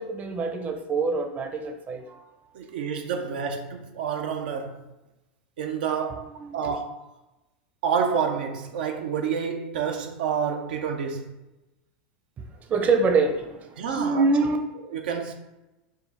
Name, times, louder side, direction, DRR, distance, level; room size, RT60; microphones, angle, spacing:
voice 1, 0.0-2.2 6.1-6.8 12.7-14.6, right 4 dB, 30° right, 0.6 m, -25 dB
voice 2, 2.5-4.8 5.6-6.3 6.5-7.0 7.8-11.3 13.8-14.2 14.9-15.3, right 6 dB, 80° right, 0.5 m, -28 dB
5.0 x 2.4 x 4.0 m
hypercardioid pair, 115°, 5 cm